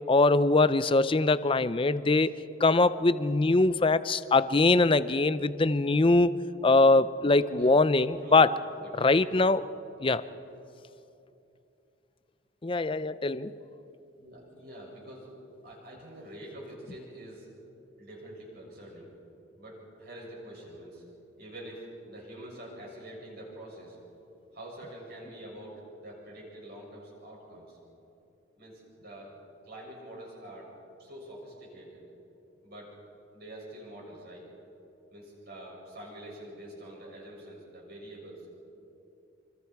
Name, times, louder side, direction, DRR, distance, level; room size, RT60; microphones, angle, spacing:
voice 1, 0.0-2.3 2.6-6.3 6.6-8.5 9.0-9.6 10.0-10.2 12.6-13.5, left 3 dB, 25° left, 14 dB, 0.5 m, -22 dB
voice 2, 8.8-9.3 14.2-15.3 15.6-17.5 18.0-19.1 19.6-21.0 21.4-24.0 24.5-27.8 28.6-29.3 29.6-30.7 31.0-32.0 32.6-32.9 33.3-34.5 35.1-38.5, right 1 dB, 50° right, -3 dB, 7.3 m, -46 dB
27.0 x 25.0 x 4.7 m, 2.8 s
head